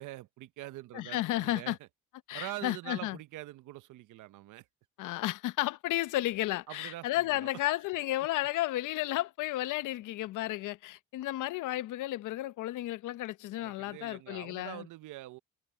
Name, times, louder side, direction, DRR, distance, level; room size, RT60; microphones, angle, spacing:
voice 1, 0.0-1.9 2.3-4.7 6.7-7.5 13.6-15.4, right 16 dB, 85° right, 0.7 m, -44 dB
voice 2, 0.9-1.8 2.3-3.2 5.0-14.9, left 15 dB, 85° left, 0.8 m, -33 dB
cardioid pair, 90°, 30 cm